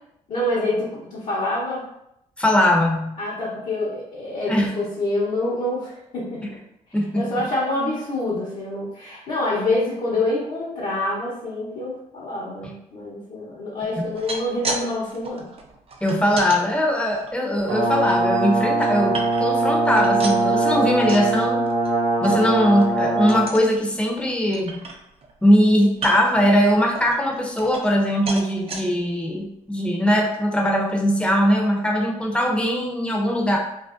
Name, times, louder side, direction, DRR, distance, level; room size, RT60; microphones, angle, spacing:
voice 1, 0.3-1.9 3.2-6.6 6.9-15.5, left 2 dB, 60° left, -8 dB, 0.8 m, -26 dB
voice 2, 2.4-3.2 4.5-4.7 6.9-7.2 16.0-21.6 22.2-24.8 25.4-33.6, equal, 5° left, 0 dB, 0.6 m, -20 dB
sound 1, 14.0-14.8 15.1-16.6 17.1-18.1 18.6-19.6 19.9-21.3 21.7-21.9 22.2-22.3 22.7-22.9 23.3-23.7 24.2-24.3 24.5-25.3 25.9-26.4 26.9-28.0 28.3-28.8 29.4-29.5 29.8-29.9, right 3 dB, 40° right, 0.5 m, -33 dB
Brass instrument, 17.7-23.5, right 2 dB, 65° right, 0.9 m, -21 dB
2.5 x 2.0 x 2.4 m, 0.80 s
supercardioid pair, 60°, 15 cm